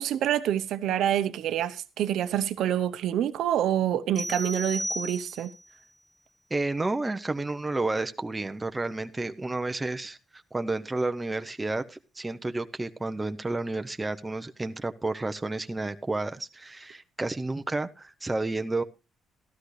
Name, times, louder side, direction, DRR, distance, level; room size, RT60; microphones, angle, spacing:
voice 1, 0.0-5.5, right 11 dB, 80° right, 0.8 m, -27 dB
sound 1, 4.2-5.7, equal, 5° left, 1.6 m, -34 dB
voice 2, 6.5-10.2 10.5-18.8, right 2 dB, 15° right, 0.8 m, -31 dB
13.0 x 13.0 x 3.3 m
cardioid pair, 90°, 0 cm